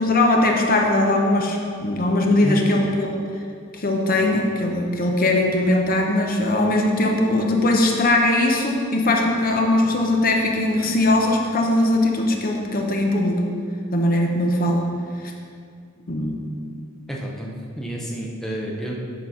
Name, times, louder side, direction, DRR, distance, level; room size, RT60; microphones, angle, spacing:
voice 1, 0.0-3.2 3.7-13.4 13.9-14.9 15.2-15.3 16.1-16.4, left 1 dB, 45° left, 1 dB, 0.8 m, -20 dB
voice 2, 17.1-18.9, right 1 dB, ahead, -3 dB, 0.7 m, -29 dB
7.3 x 4.0 x 5.6 m, 2.2 s
head